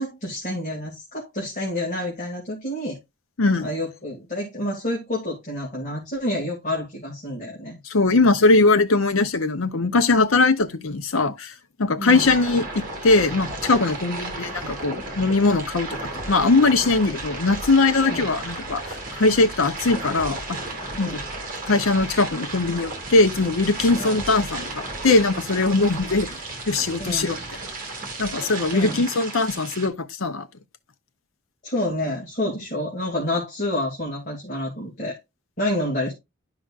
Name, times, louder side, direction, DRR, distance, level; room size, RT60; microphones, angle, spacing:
voice 1, 0.0-3.0 3.6-7.8 12.0-12.3 18.0-18.2 20.9-21.3 24.0-24.2 26.1-26.2 27.0-27.3 28.7-29.1 31.6-35.2 35.6-36.1, left 1 dB, 40° left, 2.4 m, -28 dB
voice 2, 7.8-11.5 11.8-15.9 16.3-20.6 21.0-21.2 21.7-26.4 26.7-27.4 28.2-30.5, left 3 dB, 85° left, 0.8 m, -20 dB
sound 1, 12.1-29.9, right 2 dB, 40° right, 2.3 m, -34 dB
11.5 x 5.0 x 2.4 m
head